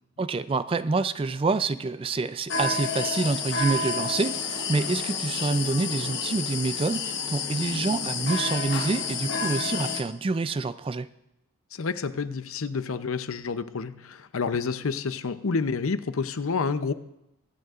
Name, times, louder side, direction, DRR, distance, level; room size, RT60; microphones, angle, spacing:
voice 1, 0.2-11.1, right 3 dB, 25° right, 14 dB, 0.3 m, -27 dB
sound 1, 2.5-10.0, left 4 dB, 55° left, 1.1 m, -30 dB
voice 2, 11.7-16.9, left 4 dB, 80° left, 12 dB, 0.6 m, -29 dB
24.0 x 9.2 x 2.5 m, 0.87 s
head